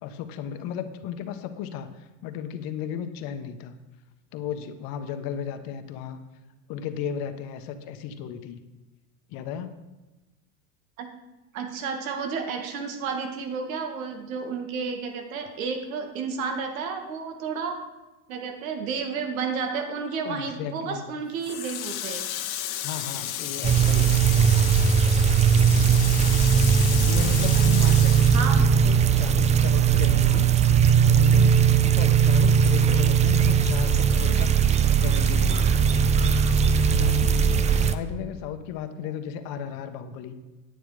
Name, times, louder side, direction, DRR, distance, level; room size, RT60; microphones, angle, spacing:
voice 1, 0.0-3.7 4.3-6.2 6.7-8.6 9.3-9.7 20.2-21.1 22.8-24.5 26.5-30.7 31.0-36.0 36.9-37.6 37.9-40.3, left 8 dB, 55° left, 8 dB, 1.2 m, -35 dB
voice 2, 11.5-17.8 18.3-22.2 27.6-28.0 28.3-28.6 39.0-39.1, right 5 dB, 75° right, 5 dB, 2.0 m, -31 dB
Water tap faucet, 21.4-29.3 29.6-30.9, left 11 dB, 75° left, 1.3 m, -33 dB
sound 1, 23.6-38.0, right 7 dB, 15° right, 0.4 m, -19 dB
9.5 x 9.1 x 4.9 m, 1.1 s
hypercardioid pair, 105°, 41 cm